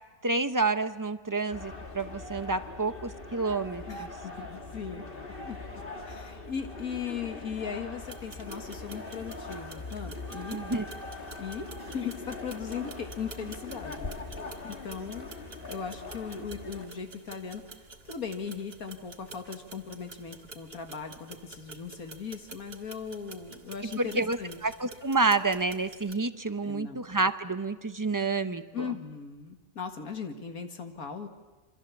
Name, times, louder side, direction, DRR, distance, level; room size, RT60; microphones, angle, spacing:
voice 1, 0.2-4.1 10.5-10.9 23.8-28.9, right 3 dB, 20° right, 10 dB, 0.5 m, -29 dB
sound 1, 1.5-16.9, left 3 dB, 40° left, 2.1 m, -42 dB
voice 2, 3.9-5.6 6.0-10.6 11.4-11.7 11.9-14.1 14.6-15.3 15.7-17.6 18.1-24.6 26.6-27.1 28.7-31.3, left 6 dB, 75° left, 5 dB, 2.1 m, -38 dB
sound 2, 8.0-26.1, right 3 dB, 45° right, 1.9 m, -49 dB
28.0 x 25.0 x 7.1 m, 1.2 s
omnidirectional pair, 1.5 m